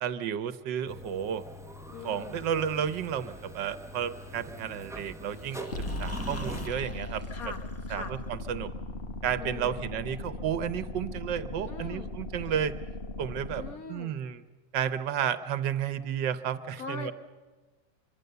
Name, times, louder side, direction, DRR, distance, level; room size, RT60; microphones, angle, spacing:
voice 1, 0.0-1.4 2.0-5.7 6.0-7.2 7.9-8.7 9.2-12.7 13.2-13.6 13.9-14.4 14.7-17.1, right 9 dB, 85° right, 13 dB, 1.6 m, -32 dB
sound 1, 0.9-6.7, equal, ahead, 1.0 m, -43 dB
voice 2, 1.9-2.4 7.3-7.6 7.9-8.1 9.4-9.8 11.7-12.1 13.6-14.1 16.8-17.1, left 4 dB, 55° left, 7 dB, 1.9 m, -41 dB
sound 2, 5.3-8.4, left 2 dB, 15° left, 0.6 m, -47 dB
sound 3, 5.7-13.7, left 2 dB, 35° left, 1.3 m, -38 dB
25.0 x 24.5 x 6.9 m, 1.3 s
omnidirectional pair, 1.9 m